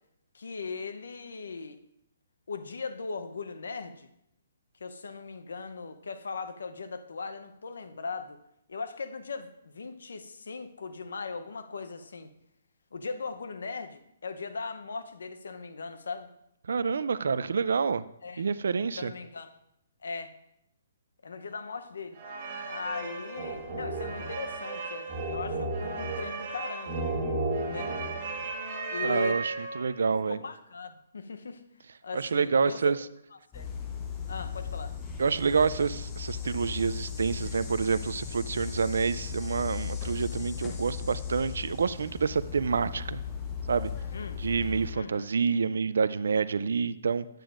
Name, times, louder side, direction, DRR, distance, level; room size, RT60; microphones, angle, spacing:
voice 1, 0.3-1.8 2.5-4.1 4.8-8.4 8.7-12.3 12.9-16.3 18.2-18.4 19.0-19.5 20.0-20.3 21.2-22.2 22.7-27.1 27.6-27.9 28.9-29.4 30.3-31.6 32.0-32.8 33.5-33.6 34.3-34.9 44.1-44.4 44.9-45.3, left 4 dB, 85° left, 8 dB, 0.7 m, -39 dB
voice 2, 16.7-18.0 18.4-19.1 29.0-30.4 32.1-33.0 35.2-43.2 43.7-43.9 44.4-47.3, right 5 dB, 75° right, 16 dB, 0.3 m, -28 dB
sound 1, 22.1-30.0, right 2 dB, 35° right, 1.5 m, -34 dB
sound 2, 33.5-44.9, left 7 dB, 15° left, 0.7 m, -37 dB
9.0 x 8.9 x 2.5 m, 0.78 s
hypercardioid pair, 165°, 0 cm